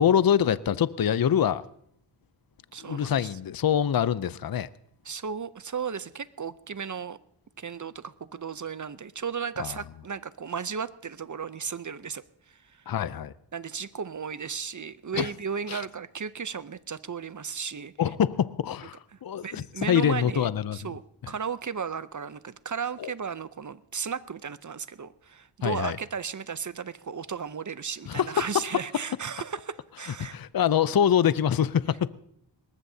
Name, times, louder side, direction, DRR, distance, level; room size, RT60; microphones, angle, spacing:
voice 1, 0.0-1.6 2.8-4.7 9.6-9.8 12.9-13.3 15.1-15.3 15.7-15.8 18.0-20.8 23.0-23.1 25.6-26.0 28.1-28.3 30.2-32.1, left 9 dB, 50° left, 0.6 m, -25 dB
voice 2, 2.7-3.3 5.0-7.2 7.6-12.8 13.5-17.9 19.4-30.4, right 6 dB, 40° right, 0.6 m, -35 dB
22.0 x 19.0 x 2.8 m
wide cardioid pair, 55°, 48 cm